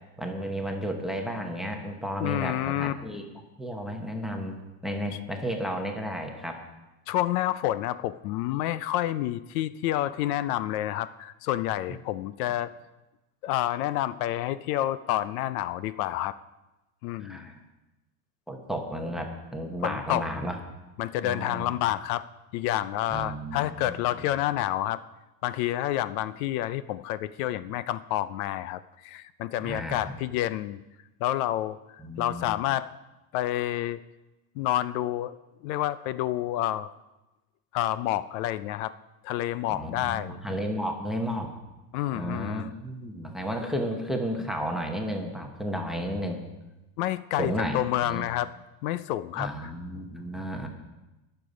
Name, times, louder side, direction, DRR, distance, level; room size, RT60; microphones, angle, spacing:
voice 1, 0.2-3.2 3.6-4.5 4.8-6.6 17.2-17.6 18.5-20.6 21.2-21.8 23.1-24.2 29.6-30.2 32.0-32.5 39.7-41.5 42.1-46.4 47.4-48.2 49.4-50.7, equal, ahead, 3 dB, 0.7 m, -33 dB
voice 2, 2.2-2.9 7.1-12.7 13.4-16.3 17.0-17.5 19.8-20.3 21.0-22.2 22.5-25.0 25.4-30.8 31.2-31.8 32.2-32.9 33.3-34.0 34.6-35.3 35.6-36.9 37.7-38.9 39.2-40.4 41.9-42.7 47.0-48.5 48.8-49.7, left 13 dB, 70° left, 15 dB, 0.6 m, -29 dB
20.5 x 6.9 x 5.0 m, 1.0 s
cardioid pair, 175°, 46 cm